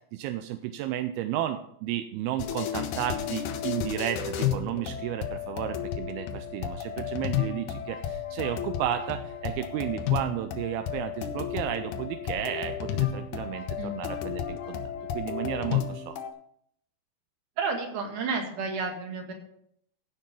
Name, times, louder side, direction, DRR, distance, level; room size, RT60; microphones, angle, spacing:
voice 1, 0.1-14.8 15.1-16.2, right 12 dB, 85° right, 8 dB, 2.3 m, -33 dB
sound 1, 2.4-16.3, left 9 dB, 75° left, 1.9 m, -32 dB
voice 2, 17.6-19.3, right 4 dB, 55° right, 2 dB, 3.1 m, -31 dB
16.0 x 5.4 x 5.2 m, 0.69 s
omnidirectional pair, 4.8 m